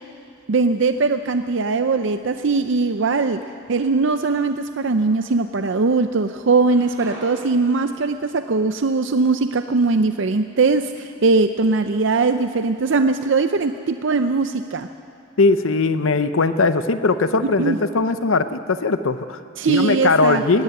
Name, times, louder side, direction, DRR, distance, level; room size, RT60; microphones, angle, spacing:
voice 1, 0.5-3.4 3.7-14.9 17.6-17.8 19.6-20.6, right 3 dB, 60° right, 9 dB, 0.5 m, -20 dB
sound 1, 3.9-4.4 5.0-6.0 6.3-10.2, right 1 dB, 15° right, 6.6 m, -45 dB
voice 2, 15.4-19.4 19.7-20.6, left 3 dB, 75° left, 11 dB, 0.7 m, -19 dB
18.0 x 16.0 x 9.5 m, 2.5 s
head